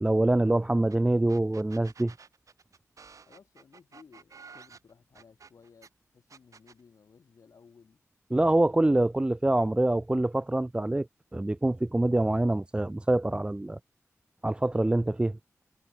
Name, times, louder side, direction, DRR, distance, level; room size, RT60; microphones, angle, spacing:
voice 1, 0.0-2.1 8.3-11.1 11.3-13.8 14.4-15.4, right 1 dB, 20° right, 0.6 m, -25 dB
sound 1, 0.9-1.0 1.3-5.9 6.3-6.8, right 5 dB, 85° right, 2.9 m, -52 dB
voice 2, 3.3-8.0, left 5 dB, 90° left, 6.1 m, -57 dB
wide cardioid pair, 80°, 5 cm